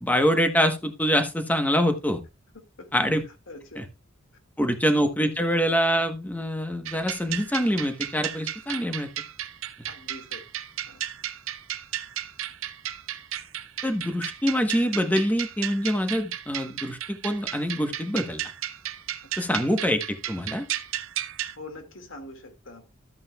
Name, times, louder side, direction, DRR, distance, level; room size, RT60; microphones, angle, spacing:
voice 1, 0.0-2.2 2.9-3.2 3.8-3.9 4.6-9.1 13.8-18.4 19.4-20.7, equal, 10° left, 1.1 m, -25 dB
voice 2, 2.5-2.9 3.5-3.8 9.9-10.4 10.9-11.0 19.2-19.3 21.6-22.9, left 2 dB, 75° left, 2.1 m, -43 dB
sound 1, 6.9-21.6, right 11 dB, 90° right, 0.6 m, -34 dB
13.0 x 8.4 x 2.3 m
head